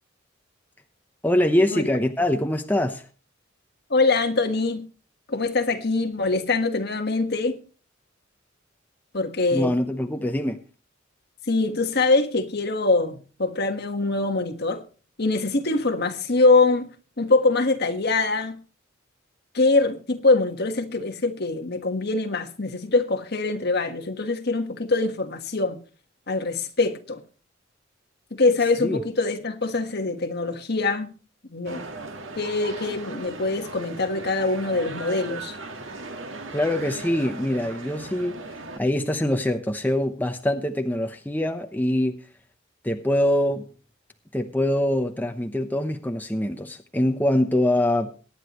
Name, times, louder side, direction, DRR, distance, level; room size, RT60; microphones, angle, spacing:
voice 1, 1.2-3.1 9.5-10.6 28.8-29.0 36.5-38.4 38.8-42.2 42.8-43.7 44.3-48.1, left 1 dB, 10° left, 0.8 m, -24 dB
voice 2, 3.9-4.8 5.3-7.6 9.1-9.7 11.5-14.8 15.2-16.9 17.2-18.5 19.5-25.8 26.3-27.2 28.3-31.1 31.5-31.8 32.4-35.6, left 3 dB, 55° left, 1.5 m, -23 dB
sound 1, 31.6-38.8, right 3 dB, 80° right, 1.7 m, -37 dB
23.0 x 9.7 x 3.1 m
head